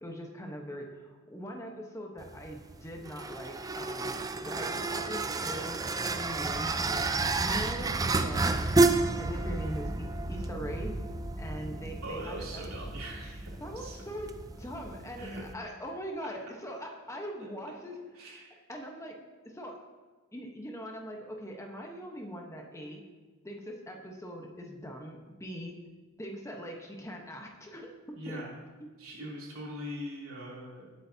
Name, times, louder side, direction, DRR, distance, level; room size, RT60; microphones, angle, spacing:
voice 1, 0.0-8.6 9.2-11.0 11.4-12.8 13.6-14.3 14.6-18.0 18.3-18.4 18.7-19.2 19.4-19.8 20.3-23.0 23.4-25.8 26.2-28.4, equal, 15° left, 1 dB, 1.1 m, -41 dB
sound 1, 2.2-15.5, right 3 dB, 15° right, 0.4 m, -31 dB
sound 2, 6.1-15.6, equal, 30° left, 1.7 m, -41 dB
voice 2, 12.0-14.0 15.2-15.4 18.1-18.5 28.1-28.5 29.0-30.9, equal, 80° right, -4 dB, 3.3 m, -41 dB
19.0 x 8.0 x 2.8 m, 1.3 s
head